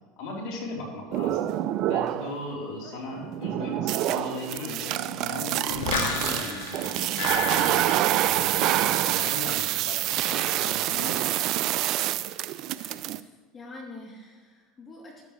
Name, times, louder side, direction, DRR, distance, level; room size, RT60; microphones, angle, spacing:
voice 1, 0.2-1.5 1.9-11.2, left 2 dB, 65° left, -2 dB, 3.9 m, -38 dB
sound 1, 1.1-2.4 2.9-13.2, right 13 dB, 55° right, 0.5 m, -27 dB
sound 2, 5.7-8.8 9.0-9.5, left 4 dB, 85° left, 1.9 m, -32 dB
voice 2, 12.8-15.3, left 2 dB, 30° left, -2 dB, 3.1 m, -46 dB
13.0 x 12.5 x 3.3 m, 1.3 s
hypercardioid pair, 95°, 0 cm